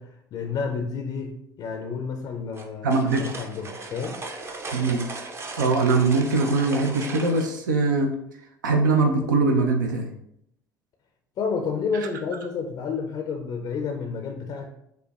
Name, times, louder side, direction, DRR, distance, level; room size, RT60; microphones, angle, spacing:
voice 1, 0.0-2.9 3.2-4.2 11.4-14.7, left 5 dB, 40° left, 3 dB, 0.4 m, -30 dB
sound 1, 2.5-7.5, right 3 dB, 25° right, 0.5 m, -37 dB
voice 2, 2.8-3.3 4.7-5.0 5.6-8.1 8.6-10.1, right 3 dB, 75° right, 3 dB, 0.4 m, -22 dB
5.3 x 2.1 x 2.3 m, 0.76 s
figure-of-eight pair, 60°, 10 cm